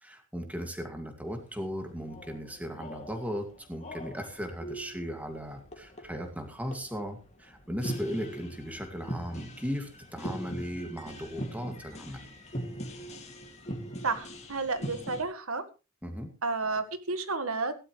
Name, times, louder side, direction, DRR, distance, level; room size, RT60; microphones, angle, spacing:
voice 1, 0.0-12.2 16.0-16.3, equal, 5° right, 4 dB, 2.3 m, -37 dB
sound 1, 1.3-15.2, equal, 30° left, 2.4 m, -41 dB
voice 2, 14.0-15.6 16.4-17.7, right 3 dB, 80° right, 10 dB, 1.7 m, -31 dB
17.0 x 12.0 x 3.2 m, 0.30 s
head